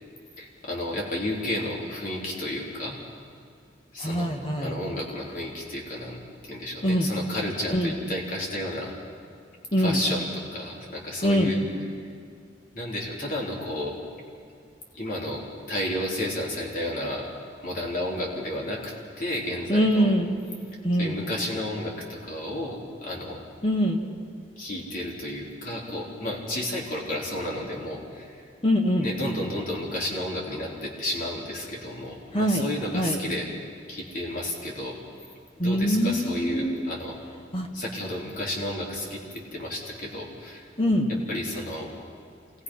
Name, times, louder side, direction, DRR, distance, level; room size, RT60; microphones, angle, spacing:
voice 1, 0.4-3.0 3.9-6.2 6.5-9.0 9.8-11.6 12.0-12.1 12.7-14.0 14.9-17.3 17.6-20.1 21.0-23.4 24.6-28.4 29.0-33.5 33.9-35.0 35.6-37.2 37.7-40.7 41.3-41.9, left 1 dB, 50° left, -2 dB, 3.9 m, -32 dB
voice 2, 4.0-4.7 6.8-7.1 7.7-7.9 9.7-10.0 11.2-11.5 19.7-20.3 20.8-21.2 23.6-24.0 28.6-29.1 32.3-32.6 32.9-33.2 35.6-36.8 37.5-37.7 40.8-41.1, equal, 35° left, 2 dB, 2.1 m, -23 dB
27.5 x 19.5 x 5.7 m, 2.3 s
head